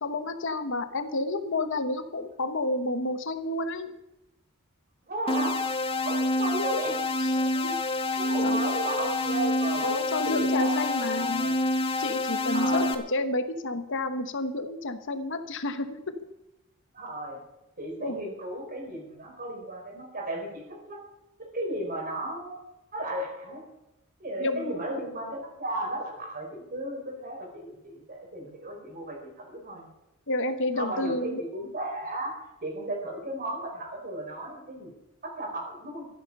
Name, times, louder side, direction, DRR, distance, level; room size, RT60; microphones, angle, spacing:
voice 1, 0.0-3.9 7.2-7.7 8.4-8.6 9.8-11.5 12.0-16.2 18.0-18.2 24.4-24.7 30.3-31.4, left 2 dB, 60° left, 10 dB, 1.2 m, -30 dB
voice 2, 5.1-5.6 6.0-7.0 7.3-7.6 8.2-9.9 10.2-11.6 12.5-12.9 16.9-17.4 17.8-21.0 21.4-23.6 24.2-29.9 30.8-32.3 32.6-34.9 35.2-36.1, right 1 dB, 40° right, -1 dB, 4.5 m, -35 dB
sound 1, 5.3-13.0, left 2 dB, 25° left, 1.3 m, -27 dB
14.0 x 12.0 x 5.4 m, 0.94 s
head